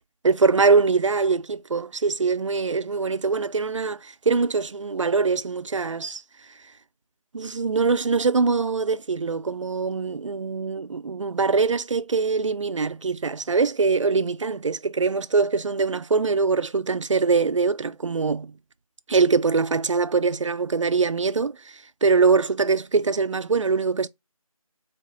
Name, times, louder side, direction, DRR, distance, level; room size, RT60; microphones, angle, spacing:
voice 1, 0.2-6.2 7.3-18.5 19.1-21.6 22.0-24.1, right 4 dB, 60° right, 0.4 m, -23 dB
4.1 x 2.8 x 2.8 m
figure-of-eight pair, 170°, 18 cm